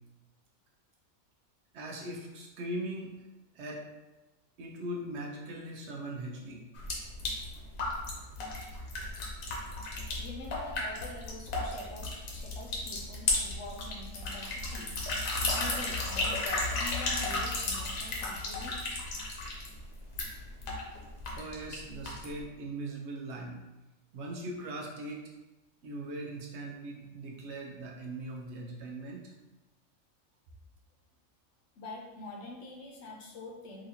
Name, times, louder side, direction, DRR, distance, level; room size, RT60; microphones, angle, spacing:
voice 1, 1.7-3.2 3.5-3.9 4.6-6.6 21.3-23.6 24.1-25.3 25.8-29.3, right 1 dB, 65° right, -1 dB, 0.8 m, -40 dB
sound 1, 6.7-22.4, left 2 dB, 85° left, 1.2 m, -34 dB
voice 2, 10.1-15.1 15.5-18.8 31.8-33.9, left 2 dB, 70° left, 0 dB, 0.8 m, -45 dB
3.7 x 2.9 x 2.7 m, 1.1 s
omnidirectional pair, 1.4 m